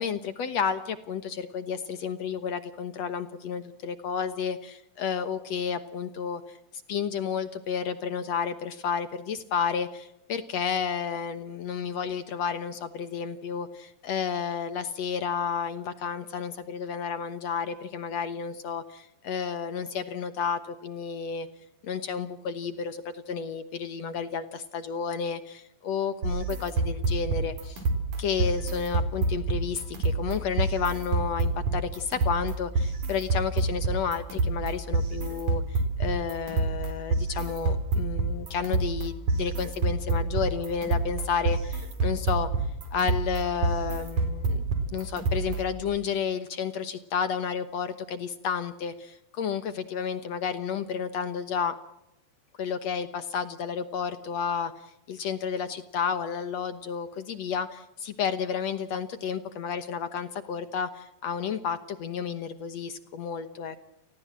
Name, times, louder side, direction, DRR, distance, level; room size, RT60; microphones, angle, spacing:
voice 1, 0.0-6.6 6.9-21.5 21.8-27.8 28.2-42.5 42.9-44.6 44.9-51.7 52.6-63.8, left 6 dB, 60° left, 12 dB, 1.9 m, -31 dB
sound 1, 26.2-45.8, right 3 dB, 55° right, 5.3 m, -28 dB
30.0 x 19.0 x 7.4 m, 0.90 s
omnidirectional pair, 4.2 m